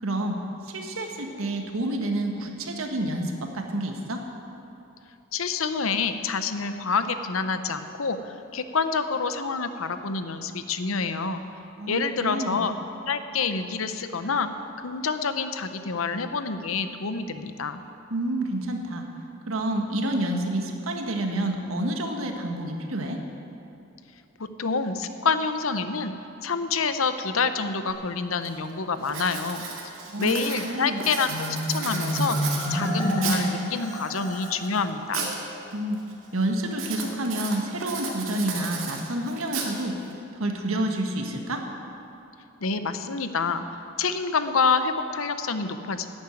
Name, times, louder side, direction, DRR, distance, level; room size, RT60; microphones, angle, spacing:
voice 1, 0.0-4.2 11.8-12.6 18.1-19.0 19.5-23.2 30.1-30.4 30.6-31.0 35.7-36.0 36.3-40.0 40.3-41.6, right 1 dB, 90° right, 3 dB, 1.6 m, -29 dB
voice 2, 5.3-11.4 11.9-12.7 13.1-14.5 14.8-17.8 24.4-26.1 26.4-29.6 30.2-31.3 31.7-32.4 32.7-35.3 42.6-43.6 44.0-46.1, left 4 dB, 80° left, 10 dB, 0.8 m, -27 dB
Writing, 27.9-28.0 28.4-28.7 29.0-33.6 34.2-35.4 35.7-36.1 36.7-40.1, right 5 dB, 70° right, 2.1 m, -34 dB
Marimba xylophone, 31.2-34.6, equal, 20° left, 2.7 m, -28 dB
11.5 x 8.9 x 9.1 m, 2.8 s
head